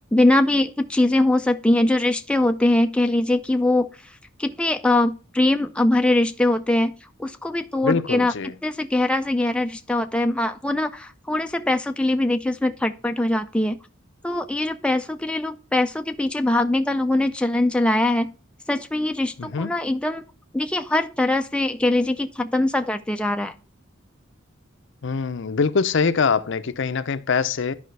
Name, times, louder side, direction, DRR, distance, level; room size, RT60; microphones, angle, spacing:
voice 1, 0.1-3.9 4.4-13.8 14.2-18.3 18.7-20.3 20.5-23.5, left 1 dB, 5° left, 0.4 m, -22 dB
voice 2, 7.8-8.5 19.4-19.7 25.0-27.7, left 5 dB, 60° left, 0.6 m, -23 dB
11.5 x 5.0 x 3.2 m
head